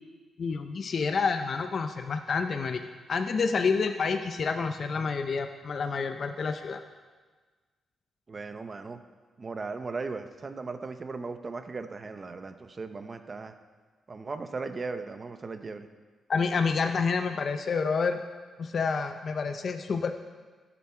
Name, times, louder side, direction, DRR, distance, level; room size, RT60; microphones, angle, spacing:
voice 1, 0.4-2.8 3.1-6.8 16.3-18.2 18.6-20.1, left 5 dB, 45° left, 7 dB, 0.5 m, -28 dB
voice 2, 8.3-9.0 9.4-13.5 14.1-15.9, right 4 dB, 30° right, 8 dB, 0.7 m, -37 dB
16.5 x 7.0 x 4.4 m, 1.4 s
cardioid pair, 140°, 0 cm